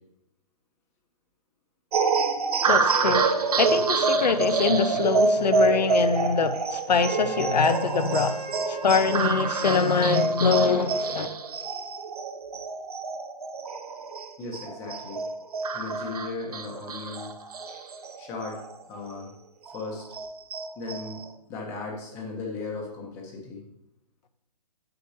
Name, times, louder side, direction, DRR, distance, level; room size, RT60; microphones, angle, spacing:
sound 1, 1.9-18.8 19.2-19.3 19.7-21.3, right 4 dB, 65° right, 0.8 m, -27 dB
voice 1, 2.7-8.4 8.7-11.3, left 5 dB, 85° left, 0.9 m, -24 dB
Wind instrument woodwind instrument, 6.9-10.3, right 4 dB, 20° right, 1.0 m, -38 dB
voice 2, 14.4-15.2 15.7-17.3 18.2-18.6 18.9-19.3 19.7-20.0 20.8-23.6, left 3 dB, 15° left, 1.0 m, -36 dB
8.3 x 6.8 x 2.8 m
hypercardioid pair, 165°, 21 cm